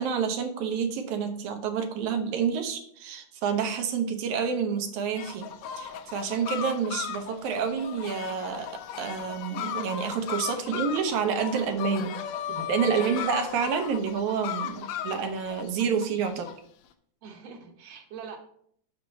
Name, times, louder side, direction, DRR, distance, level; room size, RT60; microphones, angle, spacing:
voice 1, 0.0-5.5 5.8-12.2 12.5-16.5, right 6 dB, 80° right, 6 dB, 2.3 m, -29 dB
sound 1, 5.2-16.6, left 9 dB, 75° left, 1.8 m, -36 dB
voice 2, 10.6-10.9 12.9-13.3 17.2-18.4, right 6 dB, 65° right, 4 dB, 2.0 m, -43 dB
8.4 x 5.8 x 4.0 m, 0.65 s
omnidirectional pair, 3.4 m